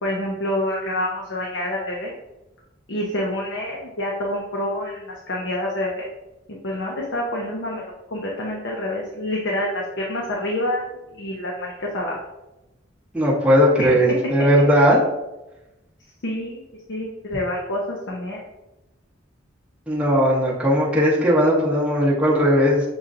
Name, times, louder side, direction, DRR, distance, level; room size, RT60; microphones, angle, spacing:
voice 1, 0.0-2.1 2.9-6.0 6.5-7.8 8.1-10.8 11.1-12.2 13.8-14.0 16.2-16.6 16.9-18.4, left 1 dB, 70° left, -2 dB, 0.7 m, -27 dB
voice 2, 13.1-15.0 19.9-22.8, equal, 5° right, -6 dB, 0.8 m, -18 dB
6.3 x 2.9 x 2.4 m, 0.97 s
head